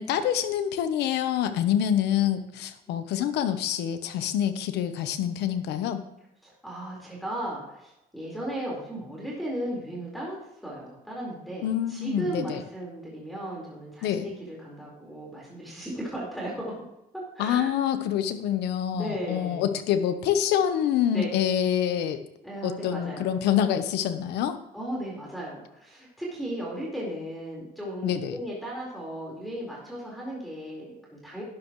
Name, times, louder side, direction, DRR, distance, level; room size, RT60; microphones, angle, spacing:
voice 1, 0.0-6.0 11.6-12.6 14.0-14.3 17.4-22.2 22.6-24.6 28.0-28.4, left 10 dB, 85° left, 10 dB, 1.0 m, -26 dB
voice 2, 6.4-16.8 17.3-17.8 18.9-19.7 21.1-21.3 22.4-23.3 24.7-31.4, right 1 dB, ahead, -5 dB, 4.6 m, -36 dB
12.0 x 11.0 x 3.2 m, 0.85 s
cardioid pair, 110°, 17 cm